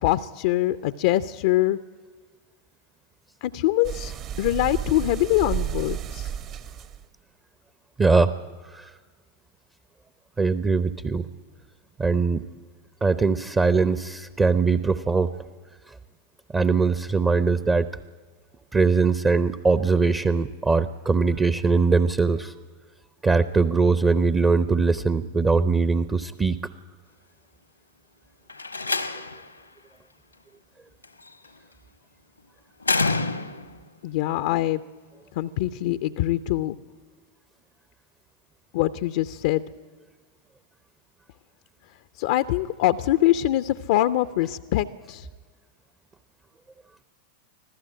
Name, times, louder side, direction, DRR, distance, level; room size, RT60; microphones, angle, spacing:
voice 1, 0.0-1.8 3.4-4.1 4.4-6.3 34.0-34.8 35.4-36.8 38.7-39.6 42.2-45.3, left 15 dB, 50° left, 12 dB, 0.6 m, -23 dB
sound 1, 3.8-7.0, right 9 dB, 35° right, 1.1 m, -32 dB
voice 2, 8.0-8.3 8.6-8.9 10.4-11.2 12.0-12.4 13.0-15.3 16.5-17.9 18.7-22.5 23.2-26.6, right 4 dB, 15° right, 13 dB, 0.8 m, -21 dB
Slam, 28.5-29.5 31.0-31.5 32.8-33.8, left 3 dB, 85° left, 1.3 m, -27 dB
25.5 x 15.5 x 8.9 m, 1.5 s
figure-of-eight pair, 90°, 0 cm